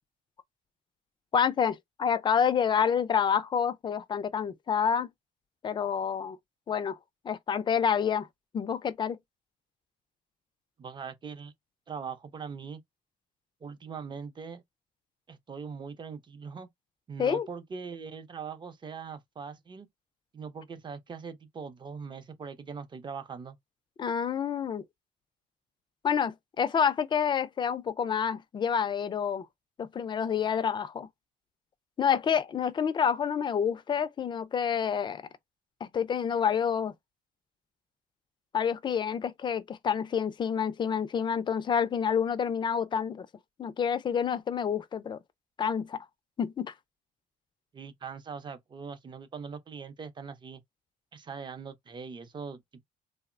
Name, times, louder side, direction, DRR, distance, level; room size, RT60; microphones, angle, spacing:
voice 1, 1.3-5.1 5.6-6.4 6.7-7.0 7.2-8.3 8.5-9.2 17.2-17.5 24.0-24.8 26.0-29.5 29.8-31.1 32.0-35.2 35.8-36.9 38.5-43.3 43.6-45.2 45.6-46.1 46.4-46.7, left 7 dB, 30° left, 0.4 m, -28 dB
voice 2, 10.8-11.5 11.9-12.8 13.6-14.6 15.3-16.7 17.1-19.9 20.3-23.6 47.7-50.6 51.1-52.8, right 6 dB, 25° right, 0.6 m, -41 dB
2.9 x 2.0 x 2.4 m
cardioid pair, 110°, 17 cm